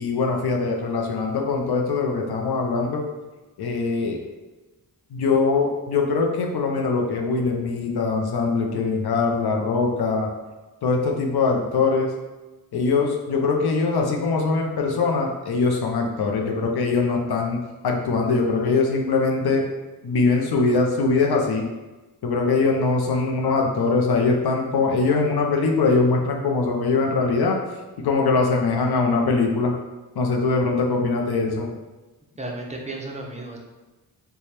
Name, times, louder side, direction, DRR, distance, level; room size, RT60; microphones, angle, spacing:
voice 1, 0.0-3.0 3.6-4.2 5.1-10.3 10.8-12.1 12.7-17.6 17.8-19.7 20.0-21.7 22.2-27.6 28.0-29.7 30.1-31.7, left 4 dB, 80° left, 1 dB, 0.6 m, -22 dB
voice 2, 32.4-33.6, right 2 dB, 20° right, -1 dB, 0.7 m, -33 dB
3.2 x 2.3 x 4.2 m, 1.1 s
cardioid pair, 75°, 38 cm